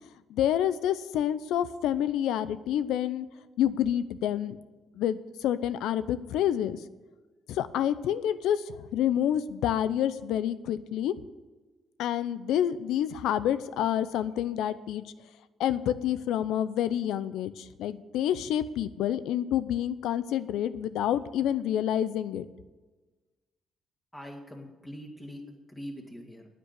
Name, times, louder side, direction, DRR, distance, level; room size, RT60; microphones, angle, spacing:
voice 1, 0.3-3.3 3.6-4.6 5.0-6.8 7.5-11.1 12.0-15.0 15.6-22.5, left 10 dB, 85° left, 14 dB, 0.6 m, -28 dB
voice 2, 24.1-26.5, equal, 10° left, -1 dB, 2.3 m, -43 dB
9.9 x 9.0 x 8.2 m, 1.2 s
cardioid pair, 90°, 0 cm